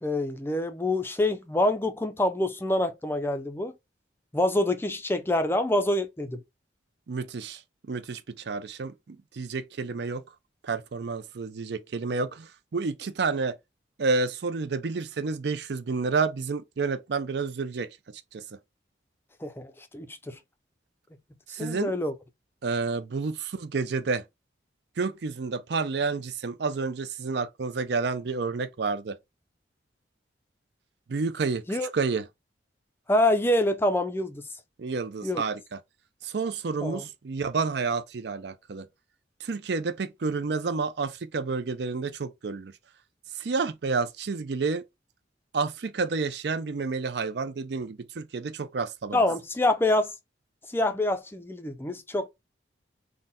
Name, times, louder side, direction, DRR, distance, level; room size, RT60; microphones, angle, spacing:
voice 1, 0.0-3.7 4.3-6.4 19.4-20.4 21.6-22.1 31.7-31.9 33.1-34.4 35.2-35.4 36.8-37.1 49.1-50.1 50.7-52.3, left 1 dB, 10° left, 0.4 m, -26 dB
voice 2, 7.1-7.6 7.9-10.2 10.6-13.6 14.0-17.9 18.3-18.4 21.5-21.9 22.6-24.2 25.0-29.2 31.1-31.6 31.9-32.2 34.8-35.8 36.2-38.9 39.4-42.7 43.4-44.8 45.5-49.2, right 4 dB, 60° right, 0.5 m, -30 dB
3.8 x 2.1 x 4.0 m
head